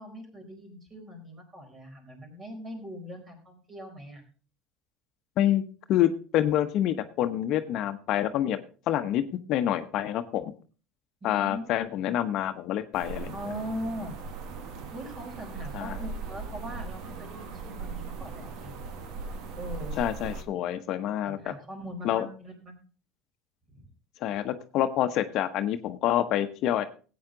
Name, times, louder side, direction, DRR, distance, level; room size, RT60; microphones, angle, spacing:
voice 1, 0.0-4.2 11.2-11.6 11.9-12.0 13.2-14.1 14.9-18.8 19.6-20.0 21.2-22.7 23.7-23.8, equal, 35° right, 3 dB, 4.5 m, -40 dB
voice 2, 5.9-8.6 8.9-10.5 11.2-13.3 15.7-16.0 20.0-21.5 22.0-22.3 24.2-26.8, left 11 dB, 55° left, 9 dB, 0.9 m, -27 dB
sound 1, 12.9-20.4, right 4 dB, 65° right, 1.6 m, -39 dB
14.5 x 8.8 x 3.9 m, 0.38 s
supercardioid pair, 105°, 0 cm